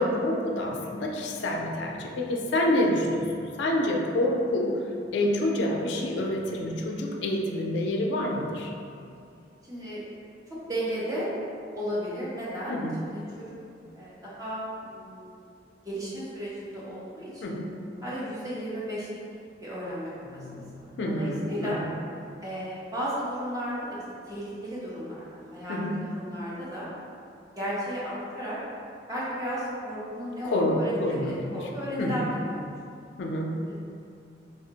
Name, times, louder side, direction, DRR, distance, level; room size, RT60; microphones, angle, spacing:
voice 1, 0.0-3.2 3.6-4.8 5.1-8.7 12.7-12.9 17.4-17.8 20.3-21.9 25.7-26.0 30.4-31.5 32.0-32.3 33.2-33.6, left 1 dB, 80° left, 0 dB, 0.4 m, -27 dB
voice 2, 9.7-10.0 10.5-11.3 11.7-13.4 13.9-15.4 15.8-17.6 18.0-19.1 19.6-20.4 21.0-21.8 22.4-24.0 24.3-25.3 25.5-25.8 26.1-26.9 27.6-28.6 29.1-32.6 32.9-33.0 33.7-33.8, equal, 20° right, -9 dB, 0.6 m, -34 dB
3.4 x 2.0 x 2.7 m, 2.5 s
head